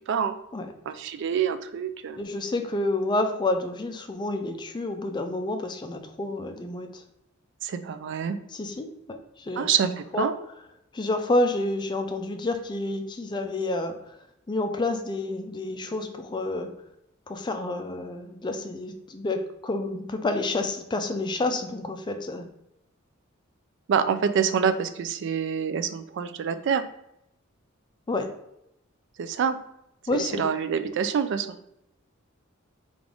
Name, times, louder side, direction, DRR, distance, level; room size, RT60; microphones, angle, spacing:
voice 1, 0.9-2.2 7.6-8.4 9.6-10.3 23.9-26.8 29.2-29.6 30.1-31.5, right 7 dB, 60° right, 11 dB, 0.3 m, -26 dB
voice 2, 2.2-7.0 8.5-9.7 10.1-10.3 10.9-14.0 14.5-16.7 17.3-22.5 28.1-28.3 30.1-30.4, left 2 dB, 20° left, 6 dB, 0.4 m, -29 dB
3.6 x 2.5 x 3.3 m, 0.81 s
head